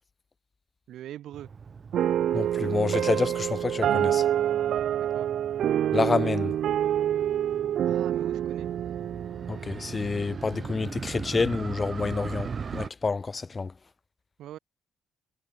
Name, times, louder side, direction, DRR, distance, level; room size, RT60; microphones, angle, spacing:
voice 1, 0.9-1.5 5.1-5.3 7.8-8.7 14.4-14.6, right 12 dB, 80° right, 1.3 m, -42 dB
Motorcycle, 1.3-12.9, right 5 dB, 30° right, 1.1 m, -40 dB
sound 1, 1.9-10.5, right 10 dB, 65° right, 0.6 m, -27 dB
voice 2, 2.3-4.2 5.9-6.6 9.5-13.7, left 4 dB, 20° left, 0.5 m, -28 dB
cardioid pair, 165°, 0 cm